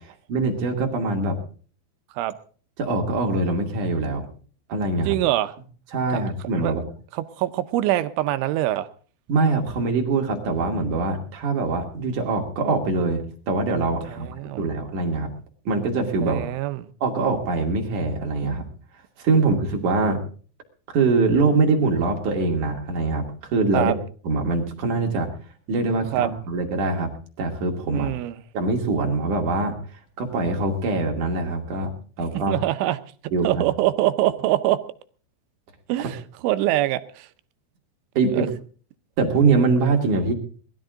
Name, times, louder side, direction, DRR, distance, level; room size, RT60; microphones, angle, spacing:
voice 1, 0.3-1.4 2.8-4.3 4.7-5.2 5.9-6.8 9.3-15.3 15.6-16.4 17.0-18.6 19.2-20.2 20.9-23.9 24.2-25.3 25.7-27.1 27.4-28.1 28.5-29.7 30.2-31.9 32.2-32.6 33.3-33.6 38.1-38.5 39.2-40.3, right 3 dB, 45° right, 2 dB, 3.4 m, -23 dB
voice 2, 5.1-5.5 6.1-6.2 6.6-6.7 7.1-8.9 14.1-14.7 16.2-16.9 23.7-23.9 26.1-26.3 27.9-28.4 32.5-33.0 33.4-34.8 35.9-37.3 38.4-38.5, right 15 dB, 80° right, 11 dB, 3.2 m, -24 dB
20.5 x 13.0 x 3.8 m, 0.42 s
omnidirectional pair, 5.6 m